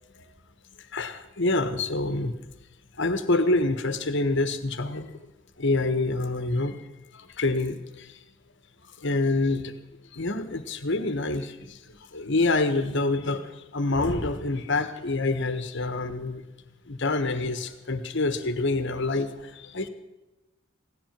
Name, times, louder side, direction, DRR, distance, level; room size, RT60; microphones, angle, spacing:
voice 1, 0.8-2.3 3.0-5.1 5.6-6.8 7.1-8.2 9.0-9.7 10.1-16.4 16.9-19.9, left 2 dB, 60° left, 10 dB, 1.3 m, -27 dB
16.5 x 10.5 x 7.4 m, 1.1 s
head